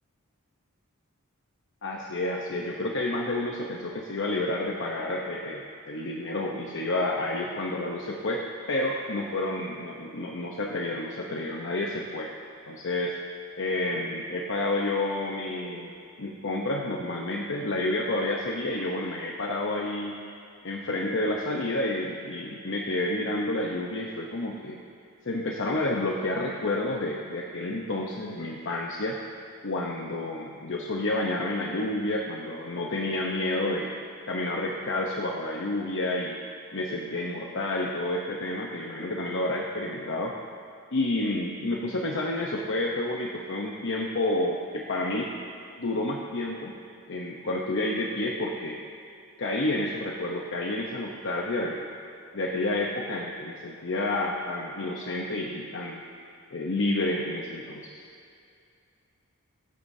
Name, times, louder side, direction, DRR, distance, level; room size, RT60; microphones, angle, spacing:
voice 1, 1.8-12.3 12.7-13.1 13.6-15.9 16.2-20.2 20.6-24.8 25.2-29.2 29.6-33.9 34.3-36.4 36.7-40.3 40.9-45.3 45.8-46.7 47.1-48.8 49.4-51.9 52.3-56.0 56.5-57.9, left 2 dB, 60° left, -1 dB, 0.9 m, -30 dB
24.0 x 8.5 x 2.8 m, 2.5 s
head